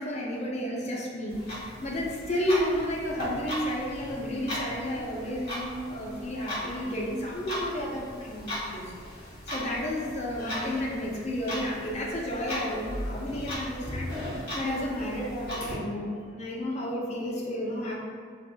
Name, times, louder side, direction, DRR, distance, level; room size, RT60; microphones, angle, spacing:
voice 1, 0.0-8.8 9.1-18.0, equal, 35° left, -3 dB, 0.5 m, -32 dB
Clock, 1.3-15.7, equal, 55° left, 1.3 m, -37 dB
4.1 x 2.4 x 2.2 m, 2.1 s
head